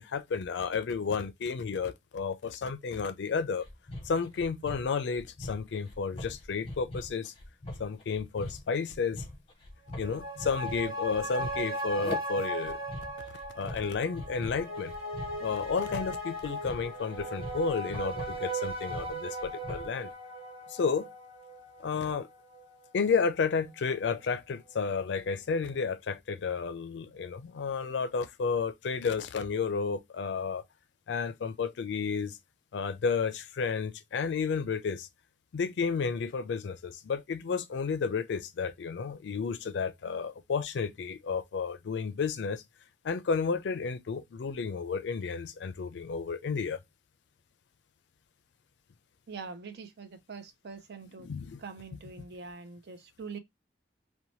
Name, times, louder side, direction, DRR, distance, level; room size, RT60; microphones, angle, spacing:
voice 1, 0.0-3.6 4.1-7.3 7.8-9.2 10.0-12.8 13.6-15.0 15.4-20.1 20.7-21.1 21.8-22.3 22.9-30.6 31.1-32.4 32.7-35.1 35.5-42.6 43.0-46.8 51.2-51.6 51.9-52.0, left 5 dB, 80° left, 0.4 m, -32 dB
sound 1, 3.6-20.0, left 1 dB, 30° left, 0.7 m, -43 dB
sound 2, 9.9-22.7 23.1-23.2, right 1 dB, 35° right, 1.1 m, -38 dB
voice 2, 49.3-51.3 51.6-53.4, right 4 dB, 65° right, 0.5 m, -44 dB
2.7 x 2.1 x 2.9 m
head